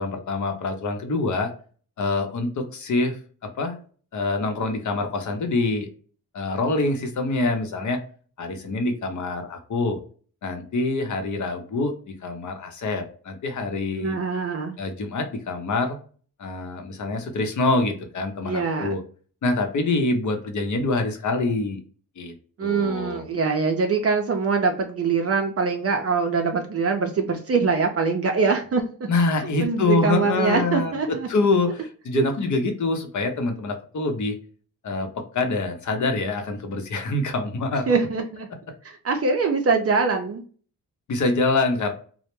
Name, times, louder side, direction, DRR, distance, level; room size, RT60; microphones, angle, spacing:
voice 1, 0.0-1.5 2.0-3.8 4.1-5.9 6.3-8.0 8.4-10.0 10.4-14.2 14.8-16.0 16.4-19.0 19.4-21.8 22.2-22.3 22.6-23.2 29.1-34.4 34.8-38.0 41.1-41.9, left 3 dB, 55° left, 5 dB, 0.7 m, -25 dB
voice 2, 13.9-14.8 18.4-18.9 22.6-28.8 29.6-31.3 32.1-32.2 37.9-38.5 38.8-40.4, right 4 dB, 45° right, 3 dB, 0.5 m, -23 dB
2.1 x 2.1 x 3.0 m, 0.42 s
cardioid pair, 90°, 34 cm